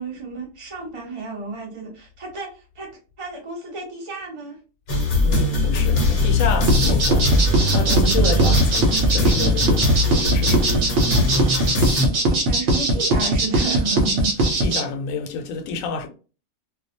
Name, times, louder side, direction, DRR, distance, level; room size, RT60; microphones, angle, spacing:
voice 1, 0.0-2.9 3.2-4.6 12.1-14.4, right 4 dB, 30° right, 0.7 m, -32 dB
sound 1, 4.9-12.1, left 2 dB, 45° left, 0.8 m, -20 dB
voice 2, 5.2-10.8 14.6-16.1, left 5 dB, 85° left, 1.0 m, -29 dB
sound 2, 6.7-14.8, right 2 dB, 65° right, 1.0 m, -20 dB
2.4 x 2.2 x 2.6 m
omnidirectional pair, 1.4 m